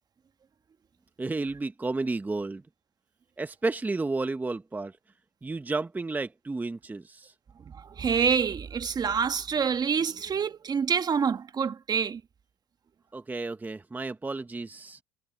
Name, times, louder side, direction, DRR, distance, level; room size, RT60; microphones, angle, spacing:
voice 1, 1.2-2.6 3.4-5.0 5.4-7.3 13.1-15.0, right 3 dB, 15° right, 1.1 m, -32 dB
voice 2, 7.7-12.2, right 6 dB, 30° right, 1.4 m, -27 dB
supercardioid pair, 95°, 14 cm